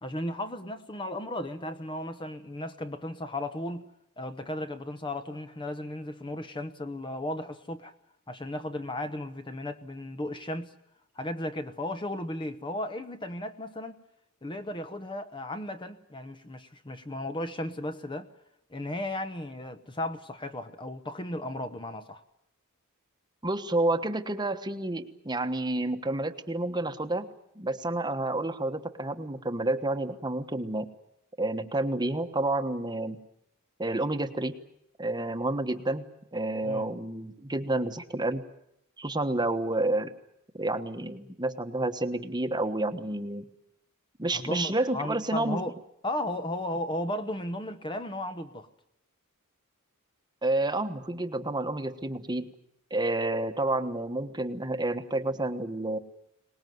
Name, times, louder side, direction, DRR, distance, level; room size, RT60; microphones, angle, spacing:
voice 1, 0.0-3.9 4.2-7.9 8.3-10.7 11.2-14.0 14.4-18.3 18.7-22.2 36.6-36.9 44.3-45.7 46.0-48.7, left 1 dB, 20° left, 1.0 m, -35 dB
voice 2, 23.4-27.3 27.6-30.9 31.4-33.2 33.8-34.5 35.0-36.0 36.3-38.4 39.0-40.1 40.5-43.5 44.2-45.6 50.4-52.5 52.9-56.0, right 2 dB, 20° right, 1.2 m, -29 dB
24.0 x 19.5 x 9.4 m
head